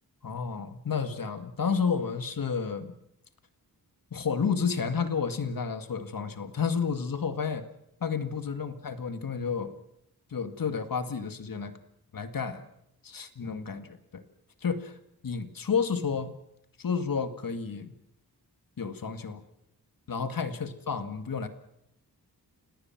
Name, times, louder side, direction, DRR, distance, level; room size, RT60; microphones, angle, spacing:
voice 1, 0.2-2.9 4.1-7.6 8.0-9.7 10.3-11.7 12.1-12.6 13.0-14.2 14.6-14.9 15.2-16.3 16.8-17.9 18.8-19.4 20.1-21.5, left 6 dB, 60° left, 9 dB, 2.0 m, -31 dB
30.0 x 18.0 x 6.0 m, 0.78 s
wide cardioid pair, 115°, 38 cm